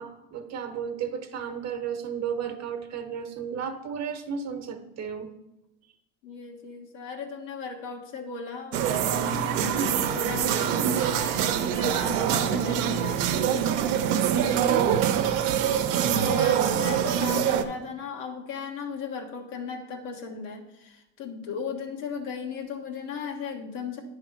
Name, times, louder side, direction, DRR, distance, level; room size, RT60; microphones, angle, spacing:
voice 1, 0.0-5.3 9.7-9.9 14.6-15.1, right 6 dB, 45° right, 7 dB, 1.0 m, -33 dB
voice 2, 6.2-13.7 16.1-24.0, left 5 dB, 85° left, 2 dB, 1.4 m, -36 dB
sound 1, 8.7-17.6, right 9 dB, 70° right, 0.7 m, -24 dB
9.4 x 3.3 x 5.8 m, 0.92 s
supercardioid pair, 100°, 37 cm